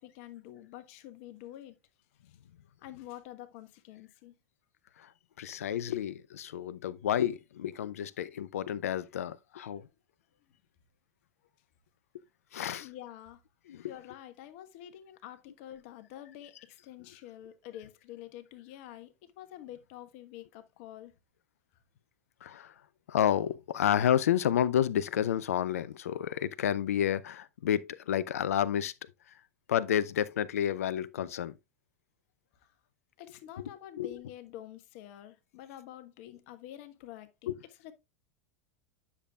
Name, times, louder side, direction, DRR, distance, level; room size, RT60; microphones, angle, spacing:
voice 1, 0.0-1.8 2.2-2.4 2.8-4.4 12.8-13.4 13.8-21.1 21.7-21.8 26.1-26.2 32.5-32.7 33.2-37.9, left 12 dB, 55° left, 1.3 m, -48 dB
voice 2, 5.4-9.8 12.5-12.8 13.7-13.8 22.4-22.7 23.1-28.9 29.7-31.5 34.0-34.1 37.5-37.6, left 10 dB, 75° left, 0.5 m, -30 dB
9.9 x 7.0 x 2.3 m
hypercardioid pair, 85°, 8 cm